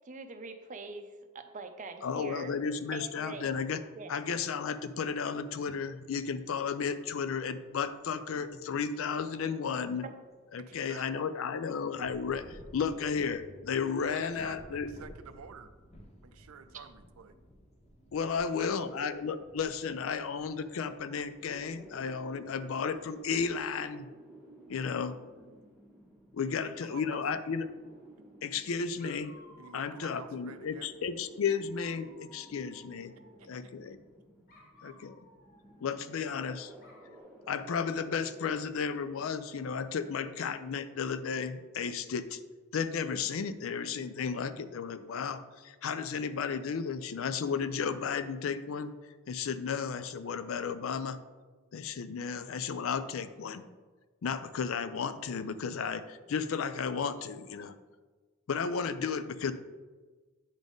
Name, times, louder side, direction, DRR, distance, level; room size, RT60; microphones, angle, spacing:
voice 1, 0.0-2.5 2.9-3.5 4.0-4.1 10.0-10.1, right 3 dB, 35° right, 7 dB, 0.5 m, -43 dB
voice 2, 2.0-3.8 4.1-10.1 10.5-14.9 18.1-24.1 24.7-25.2 26.3-27.7 28.4-29.3 29.7-33.1 33.5-34.0 34.8-35.2 35.8-36.7 37.5-42.4 42.7-48.9 49.3-51.2 51.7-53.6 54.2-57.7 58.5-59.5, left 6 dB, 70° left, 12 dB, 0.4 m, -33 dB
sound 1, 5.9-6.1 6.3-10.7 11.0-11.1 11.9-23.8, equal, 30° left, 0.7 m, -56 dB
voice 3, 10.6-11.0 14.1-15.7 16.2-17.4 18.2-18.8 26.4-27.2 28.7-28.8 29.6-30.9 33.4-33.7, right 6 dB, 90° right, 11 dB, 0.5 m, -50 dB
sound 2, 21.5-39.3, right 1 dB, ahead, 1.1 m, -54 dB
Dog, 27.5-28.3 29.0-30.6 31.4-33.5 34.5-36.4 36.8-37.2, left 1 dB, 50° left, 1.3 m, -59 dB
8.9 x 3.8 x 3.6 m, 1.3 s
head